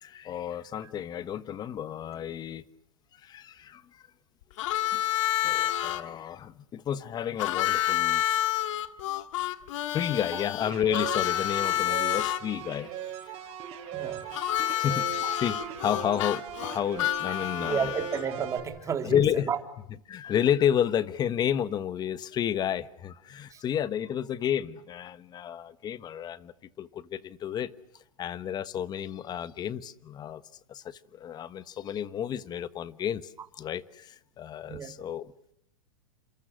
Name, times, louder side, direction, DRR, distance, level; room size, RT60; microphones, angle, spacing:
voice 1, 0.0-2.6 3.2-4.0 4.9-5.0 5.4-8.2 9.7-12.9 13.4-13.5 13.9-17.9 19.0-19.5 20.1-27.7 28.2-30.4 30.7-33.3 33.6-35.3, left 9 dB, 25° left, 1.3 m, -31 dB
Harmonica, 4.6-6.0 7.4-12.4 14.3-18.3, left 13 dB, 60° left, 1.9 m, -29 dB
sound 1, 10.6-18.6, right 9 dB, 35° right, 7.9 m, -39 dB
voice 2, 13.9-14.3 14.7-14.8 17.6-19.6 23.5-23.6 34.6-34.9, right 7 dB, 20° right, 3.3 m, -32 dB
30.0 x 27.0 x 6.4 m
hypercardioid pair, 135°, 18 cm